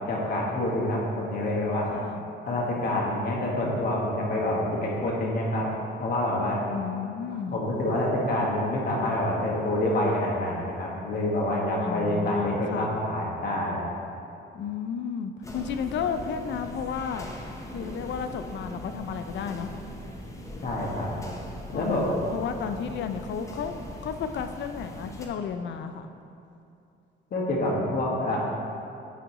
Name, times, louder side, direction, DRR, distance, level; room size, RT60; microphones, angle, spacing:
voice 1, 0.1-1.9 2.4-5.7 6.0-6.6 7.5-13.8 20.6-21.1 21.7-22.1 27.3-28.4, left 1 dB, 50° left, -3 dB, 1.5 m, -27 dB
voice 2, 1.9-2.3 6.7-7.6 11.8-13.0 14.5-17.3 17.7-19.7 21.7-23.8 24.0-26.1, left 7 dB, 65° left, 8 dB, 0.4 m, -33 dB
sound 1, 15.4-25.3, left 1 dB, 15° left, 0.8 m, -40 dB
9.0 x 4.6 x 3.0 m, 2.7 s
cardioid pair, 90°, 20 cm